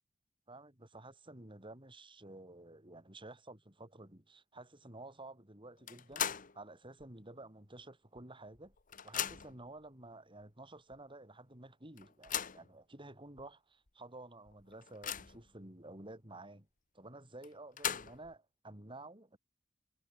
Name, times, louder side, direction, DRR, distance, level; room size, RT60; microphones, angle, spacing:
voice 1, 0.5-8.7 9.0-16.7 16.9-19.4, right 2 dB, 25° right, 5.0 m, -52 dB
sound 1, 5.9-6.6 7.0-7.1 8.2-8.3 8.5-9.7 10.4-10.5 10.9-11.0 12.0-12.7 13.4-13.5 13.9-14.0 14.5-15.5 17.4-18.3, left 9 dB, 45° left, 1.4 m, -39 dB
head